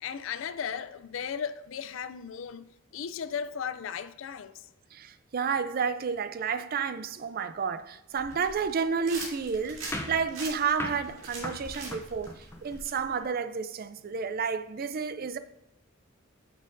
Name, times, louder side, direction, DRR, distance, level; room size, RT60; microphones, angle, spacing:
voice 1, 0.0-2.6 2.9-4.5, left 7 dB, 75° left, 0.4 m, -36 dB
voice 2, 4.9-15.4, right 6 dB, 50° right, 0.4 m, -31 dB
sound 1, 8.1-13.2, right 3 dB, 85° right, 2.4 m, -43 dB
sound 2, 9.9-12.8, left 1 dB, 15° left, 0.6 m, -39 dB
8.8 x 6.4 x 2.6 m
head